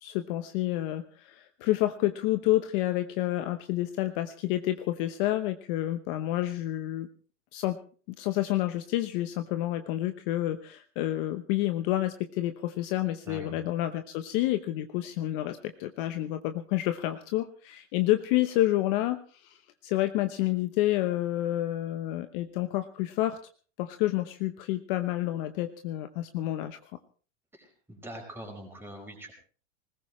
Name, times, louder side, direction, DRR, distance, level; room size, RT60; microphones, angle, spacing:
voice 1, 0.0-7.1 7.5-7.8 8.2-23.4 23.8-26.8, left 15 dB, 45° left, 9 dB, 0.9 m, -29 dB
voice 2, 13.3-13.6 27.5-29.3, right 1 dB, 5° right, 1 dB, 5.0 m, -43 dB
20.5 x 19.5 x 3.2 m, 0.40 s
supercardioid pair, 160°, 38 cm